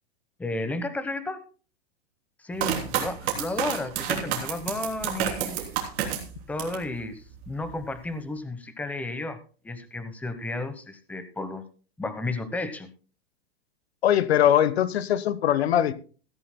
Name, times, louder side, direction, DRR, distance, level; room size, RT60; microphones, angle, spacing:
voice 1, 0.4-1.4 2.4-5.6 6.5-9.4 9.6-11.6 12.0-12.9, left 2 dB, 5° left, 1.0 m, -33 dB
sound 1, 2.6-6.9 7.3-8.0, right 9 dB, 40° right, 3.3 m, -30 dB
voice 2, 14.0-15.9, left 10 dB, 90° left, 1.2 m, -21 dB
16.0 x 15.0 x 2.2 m
supercardioid pair, 150°, 31 cm